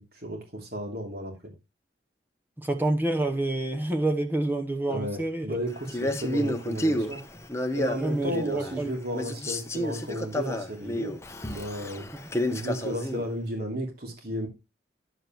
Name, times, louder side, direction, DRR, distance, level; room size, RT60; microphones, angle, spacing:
voice 1, 0.1-1.5 4.9-7.2 7.7-11.1 11.5-12.1 12.5-14.5, equal, 55° right, 3.0 m, -33 dB
voice 2, 2.6-5.6 6.0-6.1 8.0-8.9, right 2 dB, 10° right, 0.9 m, -28 dB
Male speech man speaking, 5.9-8.9 9.1-13.3, equal, 15° left, 0.9 m, -30 dB
10.5 x 7.4 x 3.1 m
head